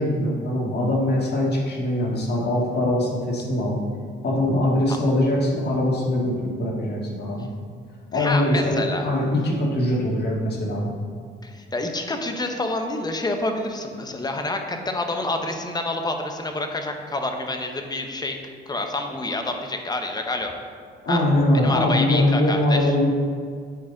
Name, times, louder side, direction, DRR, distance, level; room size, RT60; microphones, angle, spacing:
voice 1, 0.0-3.8 4.2-7.5 8.1-10.9 21.0-23.1, left 1 dB, 55° left, -3 dB, 1.8 m, -22 dB
voice 2, 8.1-9.1 11.4-18.4 18.7-20.5 21.1-21.2 21.6-22.9, left 2 dB, 20° left, 4 dB, 0.8 m, -28 dB
9.3 x 4.1 x 3.9 m, 2.1 s
cardioid pair, 90°, 20 cm